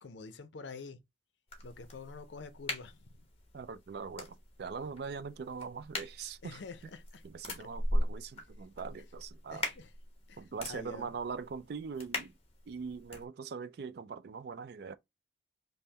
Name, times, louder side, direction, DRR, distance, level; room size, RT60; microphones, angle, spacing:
voice 1, 0.0-1.0 1.6-3.3 6.4-7.2 7.6-7.7 9.5-9.9 10.3-11.2, left 4 dB, 70° left, 0.5 m, -47 dB
sound 1, 1.5-13.3, left 1 dB, 30° left, 1.0 m, -40 dB
voice 2, 3.5-6.6 7.2-9.7 10.4-12.3 12.7-15.0, right 5 dB, 55° right, 0.3 m, -42 dB
5.4 x 2.1 x 2.8 m
head